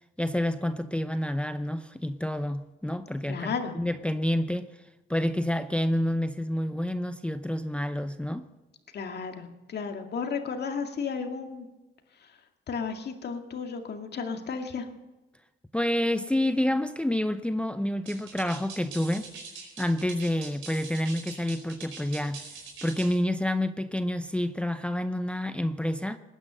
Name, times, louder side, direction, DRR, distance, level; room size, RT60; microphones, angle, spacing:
voice 1, 0.0-4.7 5.1-8.5 15.7-19.3 19.8-22.5 22.8-26.2, left 1 dB, 5° left, 0.7 m, -28 dB
voice 2, 3.3-3.7 8.9-11.7 12.7-14.9, left 5 dB, 55° left, 2.2 m, -33 dB
sound 1, 18.1-23.2, right 5 dB, 80° right, 4.8 m, -43 dB
19.0 x 10.0 x 6.4 m
cardioid pair, 90°, 20 cm